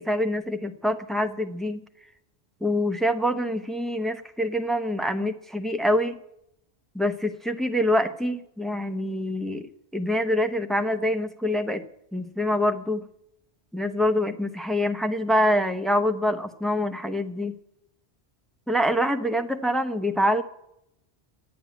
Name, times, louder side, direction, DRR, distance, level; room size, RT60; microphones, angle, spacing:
voice 1, 0.0-1.8 2.6-6.2 6.9-11.8 12.1-13.0 13.7-17.5 18.7-20.4, left 1 dB, ahead, 7 dB, 0.7 m, -25 dB
12.0 x 8.8 x 9.2 m, 0.80 s
omnidirectional pair, 1.2 m